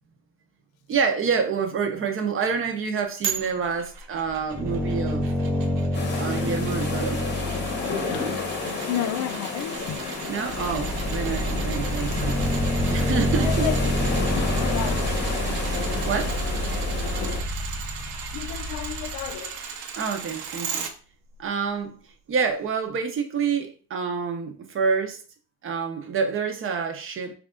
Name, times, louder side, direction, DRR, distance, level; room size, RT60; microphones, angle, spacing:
voice 1, 0.9-5.3 6.2-7.2 10.3-12.5 12.9-13.7 15.5-15.8 16.1-16.4 20.0-20.9 21.4-22.0 22.3-25.2 25.6-27.3, right 6 dB, 30° right, 0.7 m, -27 dB
sound 1, 3.2-20.9 21.3-21.4, right 6 dB, 80° right, 0.8 m, -37 dB
sound 2, 4.3-8.8 9.8-9.9 10.3-19.3, equal, 5° left, 0.4 m, -27 dB
sound 3, 5.9-17.4, left 4 dB, 25° left, 0.9 m, -31 dB
voice 2, 8.9-10.1 13.4-13.9 14.3-15.2 18.3-19.6, left 11 dB, 55° left, 0.5 m, -32 dB
3.3 x 2.5 x 3.6 m
cardioid pair, 125°, 42 cm